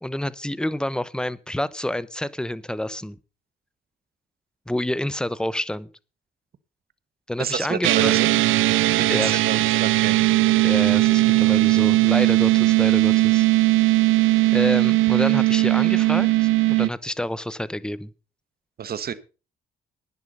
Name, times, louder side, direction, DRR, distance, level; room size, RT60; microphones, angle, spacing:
voice 1, 0.0-3.2 4.7-5.9 7.3-8.1 9.1-9.7 10.6-13.5 14.5-18.1, left 1 dB, 5° left, 18 dB, 0.9 m, -28 dB
voice 2, 7.4-8.3 8.9-10.2 18.8-19.1, right 8 dB, 50° right, 14 dB, 1.4 m, -29 dB
sound 1, 7.8-16.9, right 19 dB, 80° right, 0.6 m, -18 dB
11.0 x 10.5 x 5.5 m, 0.33 s
cardioid pair, 90°, 20 cm